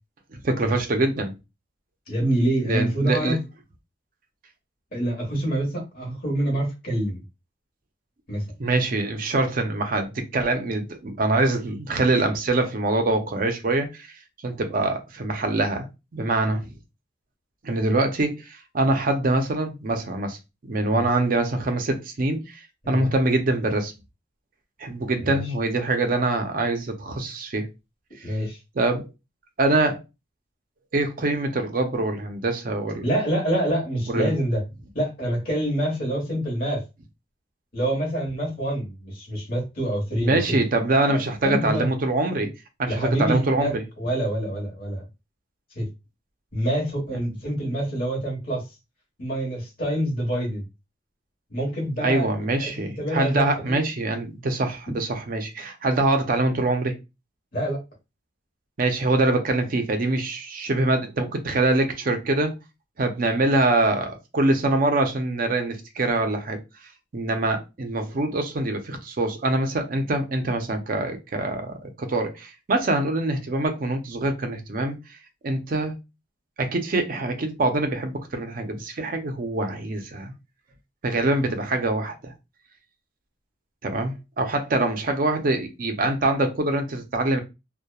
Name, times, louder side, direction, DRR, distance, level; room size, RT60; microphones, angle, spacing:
voice 1, 0.3-1.3 2.6-3.4 8.6-14.1 14.4-15.9 16.1-16.7 17.6-20.4 20.6-23.9 24.8-27.7 28.2-28.3 28.8-29.1 29.6-30.0 30.9-33.1 34.1-34.3 40.2-42.5 42.8-43.8 47.1-47.2 52.0-57.0 58.8-62.5 63.0-66.6 67.1-75.0 75.4-76.0 76.6-80.3 81.0-82.3 83.8-87.4, right 2 dB, 45° right, 0.5 m, -24 dB
voice 2, 2.1-3.4 4.9-7.2 8.3-8.4 20.9-21.1 22.8-23.1 25.2-25.4 28.2-28.6 33.0-34.6 34.9-36.8 37.7-40.6 41.0-41.9 42.9-45.0 45.7-45.9 46.5-48.7 49.2-50.6 51.5-52.3 52.7-53.8 54.9-55.0 57.5-57.8, right 1 dB, 45° left, 1.2 m, -26 dB
2.9 x 2.1 x 2.2 m
head